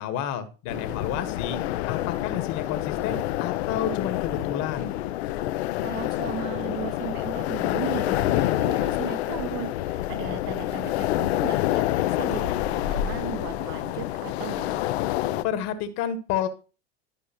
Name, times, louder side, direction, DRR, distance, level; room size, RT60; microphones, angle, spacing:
voice 1, 0.0-1.6 1.9-5.0 15.4-16.5, left 9 dB, 55° left, 9 dB, 1.4 m, -30 dB
sound 1, 0.7-15.4, left 14 dB, 75° left, 0.6 m, -27 dB
voice 2, 5.8-14.8, right 10 dB, 60° right, 10 dB, 1.1 m, -37 dB
12.0 x 4.7 x 2.9 m, 0.33 s
hypercardioid pair, 105°, 32 cm